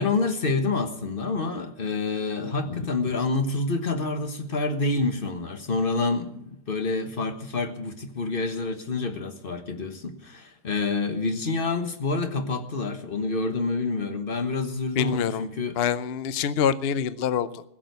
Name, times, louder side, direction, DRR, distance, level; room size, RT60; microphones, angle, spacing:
voice 1, 0.0-15.8, left 3 dB, 35° left, 7 dB, 1.4 m, -28 dB
voice 2, 15.0-15.5 15.8-17.6, left 8 dB, 55° left, 15 dB, 0.7 m, -26 dB
16.0 x 7.5 x 9.4 m, 0.77 s
omnidirectional pair, 1.7 m